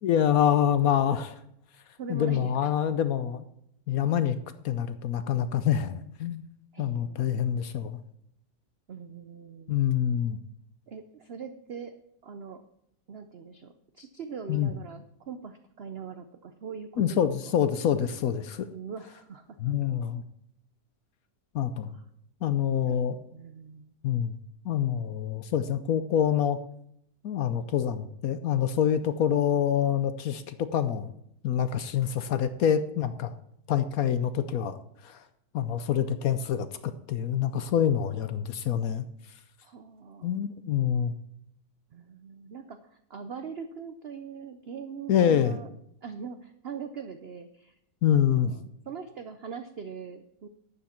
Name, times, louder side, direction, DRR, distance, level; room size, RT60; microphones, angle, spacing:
voice 1, 0.0-1.4 2.1-3.4 3.9-4.4 4.6-6.4 6.8-8.0 9.7-10.4 14.5-14.7 17.0-18.7 19.6-20.2 21.5-22.0 22.4-23.2 24.0-24.4 24.6-26.6 27.2-31.1 31.4-33.3 33.7-34.8 35.0-35.2 35.5-39.0 40.2-41.1 45.1-45.6 48.0-48.5, left 9 dB, 65° left, 12 dB, 1.0 m, -26 dB
voice 2, 2.0-2.7 6.7-7.3 8.9-9.8 10.9-11.9 12.2-12.6 13.1-17.3 18.7-19.7 21.9-22.0 22.9-23.1 23.3-23.9 39.6-40.4 41.9-45.7 46.0-47.7 48.1-50.5, right 6 dB, 85° right, 9 dB, 0.5 m, -42 dB
12.0 x 9.5 x 4.4 m, 0.73 s
omnidirectional pair, 1.9 m